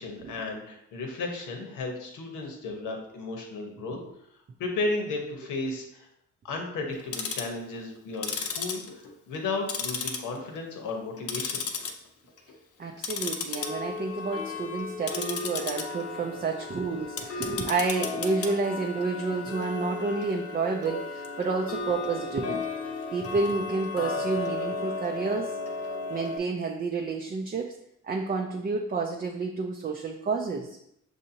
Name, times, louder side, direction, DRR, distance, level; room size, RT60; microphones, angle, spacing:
voice 1, 0.0-4.0 4.6-6.1 6.4-8.8 9.3-11.6, left 3 dB, 85° left, 2 dB, 1.0 m, -34 dB
Tick-tock, 6.9-7.6 8.1-9.4 9.7-10.6 10.9-11.9 12.3-12.5 13.0-26.4, left 4 dB, 50° left, 0.6 m, -34 dB
voice 2, 12.8-22.6 23.1-25.5 26.1-27.7 28.0-30.8, right 4 dB, 30° right, 2 dB, 0.4 m, -30 dB
6.4 x 2.7 x 2.7 m, 0.76 s
cardioid pair, 90°, 30 cm